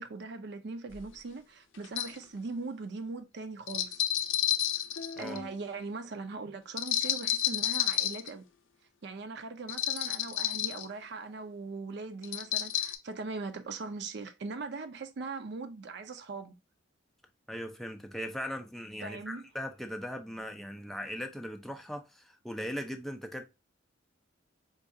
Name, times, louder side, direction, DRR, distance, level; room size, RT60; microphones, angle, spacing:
voice 1, 0.0-4.0 4.7-4.8 5.2-8.5 9.0-16.6 19.0-19.4, right 3 dB, 60° right, 0.5 m, -40 dB
sound 1, 0.9-1.0 1.8-2.2 3.7-5.5 6.8-8.3 9.7-10.9 12.2-13.0, left 11 dB, 90° left, 0.5 m, -31 dB
voice 2, 17.5-23.5, equal, ahead, 0.5 m, -39 dB
4.6 x 2.3 x 2.6 m
head